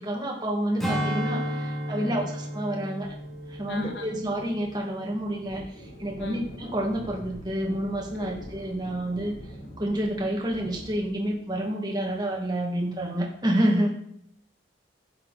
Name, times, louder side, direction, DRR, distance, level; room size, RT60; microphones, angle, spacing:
voice 1, 0.0-3.1 3.5-9.4 9.8-13.9, right 1 dB, 20° right, -1 dB, 2.3 m, -29 dB
Strum, 0.8-5.5 5.9-6.1, equal, ahead, 2.6 m, -33 dB
sound 1, 3.0-11.4, equal, 45° left, 2.6 m, -45 dB
voice 2, 3.7-4.2 6.2-6.4 8.1-8.3, left 3 dB, 65° left, 5 dB, 1.0 m, -37 dB
11.5 x 8.7 x 4.3 m, 0.71 s
head